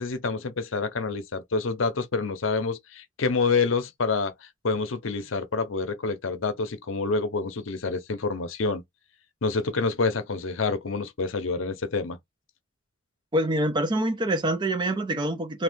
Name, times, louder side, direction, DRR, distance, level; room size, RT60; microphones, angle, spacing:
voice 1, 0.0-4.3 4.6-8.8 9.4-12.2, left 4 dB, 70° left, 0.7 m, -27 dB
voice 2, 13.3-15.6, right 1 dB, 20° right, 0.5 m, -25 dB
2.6 x 2.4 x 3.5 m
head